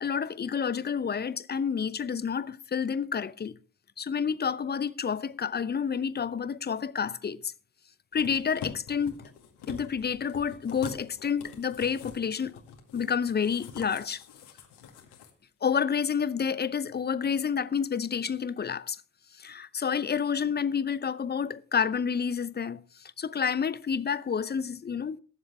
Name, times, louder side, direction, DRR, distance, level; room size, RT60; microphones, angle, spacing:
voice 1, 0.0-3.6 4.0-7.5 8.1-9.2 9.7-12.5 12.9-14.2 15.6-19.0 19.4-25.2, left 7 dB, 25° left, 0.7 m, -29 dB
sound 1, 8.1-15.3 15.6-15.7, left 7 dB, 60° left, 2.1 m, -45 dB
22.0 x 7.4 x 3.4 m
figure-of-eight pair, 45°, 45 cm